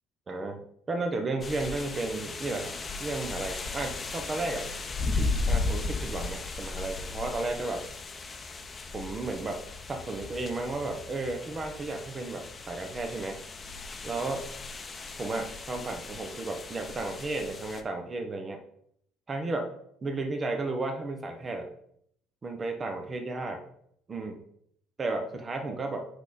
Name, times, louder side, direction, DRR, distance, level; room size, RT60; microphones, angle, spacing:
voice 1, 0.3-0.6 0.9-2.7 3.0-4.7 5.5-7.9 8.9-9.6 9.9-13.4 14.0-14.5 15.2-18.6 19.3-19.7 20.0-21.7 22.4-23.6 24.1-24.4 25.0-26.1, right 2 dB, 30° right, 4 dB, 1.0 m, -33 dB
sound 1, 1.4-17.8, left 3 dB, 30° left, 0.8 m, -36 dB
6.4 x 4.9 x 4.1 m, 0.69 s
supercardioid pair, 85°, 0 cm